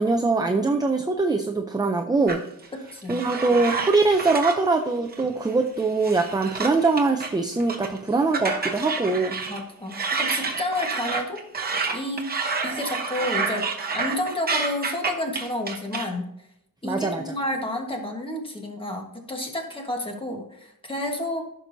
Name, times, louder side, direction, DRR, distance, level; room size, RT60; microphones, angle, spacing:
voice 1, 0.0-2.4 3.1-9.3 16.8-17.3, right 3 dB, 10° right, 4 dB, 0.5 m, -22 dB
sound 1, 2.3-4.7 5.1-5.5 5.8-7.3 7.6-8.0 8.3-9.6 9.9-16.1, right 4 dB, 25° right, 1.0 m, -29 dB
voice 2, 2.7-3.2 9.5-12.3 12.6-13.7 13.9-16.3 16.8-21.5, left 1 dB, 15° left, 2 dB, 1.3 m, -30 dB
14.5 x 6.0 x 2.7 m, 0.78 s
wide cardioid pair, 165°, 34 cm